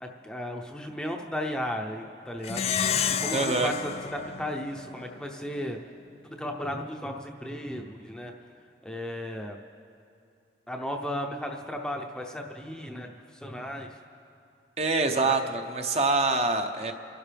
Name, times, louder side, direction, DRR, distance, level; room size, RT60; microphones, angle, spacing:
voice 1, 0.0-2.6 3.2-5.8 6.4-8.3 8.8-9.6 10.7-13.1 13.4-13.9 15.2-15.4, left 1 dB, 5° left, 1 dB, 0.7 m, -35 dB
Plucked string instrument, 2.4-5.2, left 7 dB, 35° left, 0.4 m, -30 dB
voice 2, 3.3-3.7 14.8-16.9, right 3 dB, 35° right, 5 dB, 0.9 m, -25 dB
29.0 x 12.0 x 3.5 m, 2.6 s
head